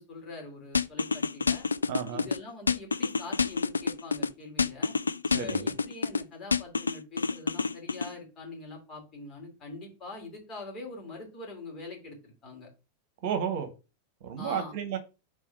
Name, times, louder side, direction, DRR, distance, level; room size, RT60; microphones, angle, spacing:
voice 1, 0.0-1.7 2.1-4.9 5.4-12.7 14.4-14.7, left 3 dB, 30° left, 1 dB, 3.0 m, -43 dB
sound 1, 0.7-2.4 2.7-4.3 4.6-6.2 6.5-8.1, left 5 dB, 75° left, 0.3 m, -27 dB
voice 2, 1.9-2.2 5.3-5.7 13.2-13.7 14.2-15.0, right 8 dB, 50° right, 7 dB, 1.2 m, -32 dB
4.8 x 3.8 x 5.6 m, 0.30 s
figure-of-eight pair, 90°, 0 cm